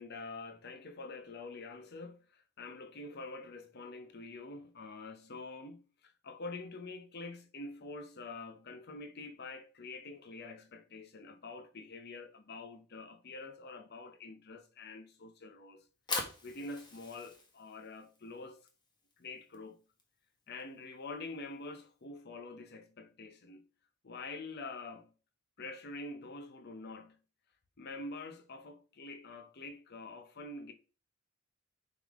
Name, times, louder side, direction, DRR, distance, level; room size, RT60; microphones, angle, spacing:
voice 1, 0.0-15.8 16.4-18.6 19.2-19.8 20.5-23.6 24.0-25.1 25.6-27.2 27.8-30.7, left 3 dB, 55° left, 0.8 m, -46 dB
Fire, 15.8-22.0, left 3 dB, 20° left, 1.3 m, -44 dB
9.6 x 3.8 x 3.5 m
head